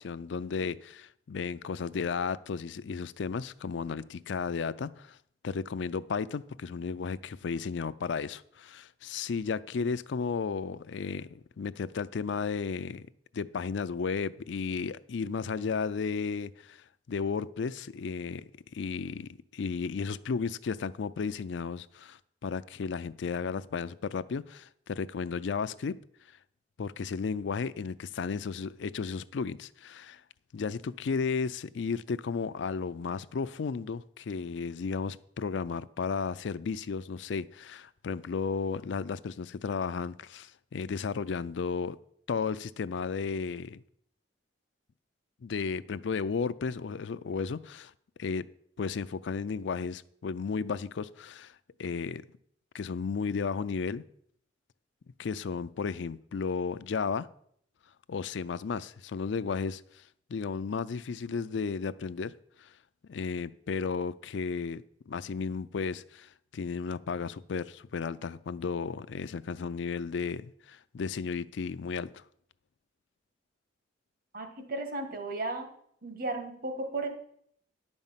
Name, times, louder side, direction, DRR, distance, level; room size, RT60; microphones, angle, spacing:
voice 1, 0.0-5.2 5.4-13.0 13.3-18.4 18.7-26.0 26.8-30.2 30.5-42.0 42.3-43.8 45.4-47.9 48.2-48.5 48.8-51.5 51.8-52.2 52.7-54.0 55.2-57.3 58.1-60.0 60.3-62.3 62.6-62.7 63.1-72.2, left 5 dB, 70° left, 0.4 m, -34 dB
voice 2, 74.3-75.7 76.0-77.1, right 2 dB, 55° right, 1.6 m, -35 dB
10.5 x 5.3 x 7.3 m
head